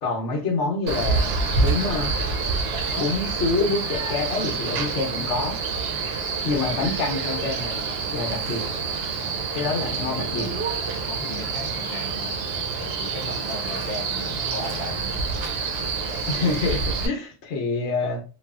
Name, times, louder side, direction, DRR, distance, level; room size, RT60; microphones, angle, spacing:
voice 1, 0.0-2.1 2.9-5.6 6.4-7.8 8.1-8.6 9.5-10.5 16.3-18.2, left 3 dB, 90° left, 1.1 m, -26 dB
Male speech man speaking, 0.9-17.1, right 4 dB, 65° right, 0.8 m, -27 dB
voice 2, 9.6-10.7 11.0-12.4 12.8-15.3, left 3 dB, 50° left, 0.9 m, -37 dB
2.8 x 2.3 x 2.3 m
omnidirectional pair, 1.2 m